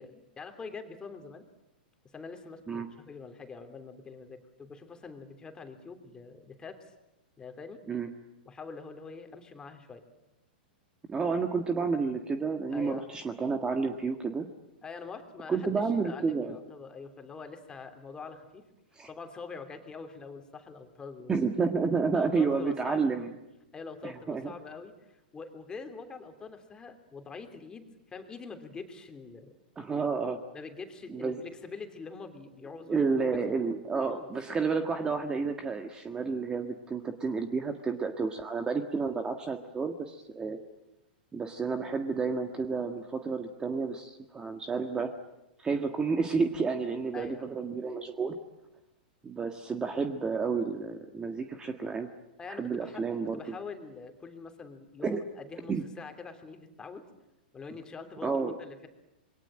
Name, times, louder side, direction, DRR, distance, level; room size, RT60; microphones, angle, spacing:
voice 1, 0.0-1.5 2.1-6.9 7.4-7.8 8.4-10.0 12.7-13.1 14.8-18.7 19.1-21.4 22.1-23.0 23.7-29.6 30.5-33.4 34.1-34.3 40.4-40.6 47.1-47.5 52.4-57.1 57.5-58.3 58.6-58.9, left 4 dB, 15° left, 6 dB, 3.2 m, -44 dB
voice 2, 11.1-14.5 15.5-16.6 18.9-19.1 21.3-23.3 24.0-24.5 29.8-30.4 31.1-31.4 32.9-40.6 41.3-45.1 45.6-48.4 49.2-52.1 52.5-53.5 55.0-55.2 55.7-55.8 58.2-58.5, right 4 dB, 15° right, 6 dB, 1.6 m, -30 dB
27.0 x 22.5 x 9.0 m, 0.94 s
hypercardioid pair, 125°, 5 cm